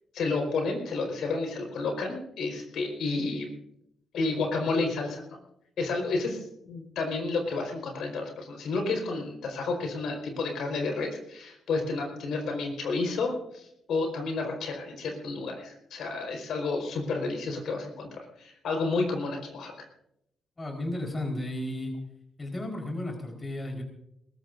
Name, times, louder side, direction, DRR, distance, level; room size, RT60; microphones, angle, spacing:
voice 1, 0.1-3.5 4.1-5.4 5.8-19.7, left 3 dB, 75° left, 2 dB, 4.7 m, -31 dB
voice 2, 20.6-21.9 22.4-23.8, left 1 dB, 20° left, 2 dB, 4.5 m, -33 dB
21.5 x 20.5 x 2.7 m, 0.76 s
cardioid pair, 150°, 0 cm